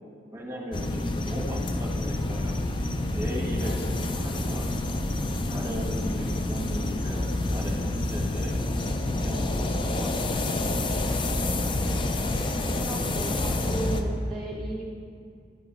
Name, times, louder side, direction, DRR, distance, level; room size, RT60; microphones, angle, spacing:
voice 1, 0.3-2.6 3.1-4.7 5.5-8.5 9.1-10.4, equal, 15° right, -2 dB, 1.3 m, -37 dB
sound 1, 0.7-14.0, left 2 dB, 30° left, 0.4 m, -28 dB
voice 2, 12.8-14.8, right 2 dB, ahead, -7 dB, 0.8 m, -35 dB
11.0 x 6.0 x 3.8 m, 2.3 s
head